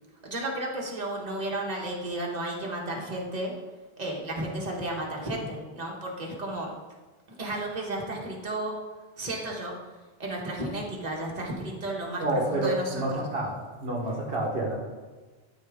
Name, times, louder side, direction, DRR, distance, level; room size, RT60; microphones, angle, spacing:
voice 1, 0.2-3.5 4.0-6.7 7.4-8.7 9.2-9.7 10.2-13.3, right 1 dB, 40° right, -2 dB, 1.5 m, -33 dB
voice 2, 12.2-13.5 13.8-14.7, right 1 dB, 65° right, -1 dB, 1.4 m, -28 dB
12.5 x 4.4 x 3.6 m, 1.3 s
omnidirectional pair, 1.1 m